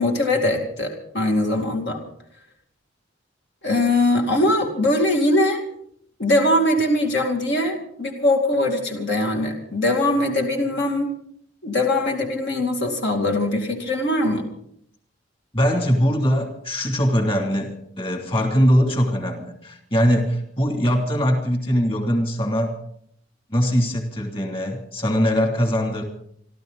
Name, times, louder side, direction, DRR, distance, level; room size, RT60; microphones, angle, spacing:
voice 1, 0.0-2.0 3.6-5.6 6.2-11.2 11.6-14.5, left 1 dB, 65° left, 2 dB, 2.5 m, -21 dB
voice 2, 15.5-22.7 23.5-26.0, equal, 30° left, 3 dB, 2.9 m, -21 dB
28.0 x 12.5 x 4.1 m, 0.68 s
head